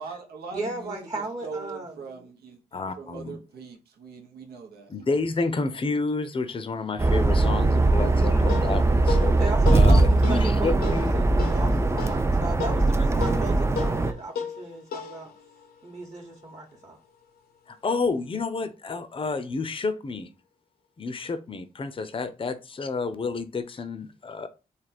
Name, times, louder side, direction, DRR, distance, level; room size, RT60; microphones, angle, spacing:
voice 1, 0.0-2.6 3.0-4.9, right 4 dB, 80° right, 0.8 m, -41 dB
voice 2, 0.5-2.2 8.2-8.6 9.4-15.3 15.8-17.0, right 2 dB, 35° right, 1.0 m, -36 dB
voice 3, 2.7-3.4 4.9-9.3 9.7-11.3 17.7-20.3 21.0-24.5, left 4 dB, 35° left, 0.6 m, -30 dB
sound 1, 7.0-14.1, right 2 dB, 15° right, 0.4 m, -21 dB
sound 2, 8.1-16.9, left 6 dB, 80° left, 0.7 m, -37 dB
3.4 x 2.1 x 4.1 m
supercardioid pair, 45°, 16 cm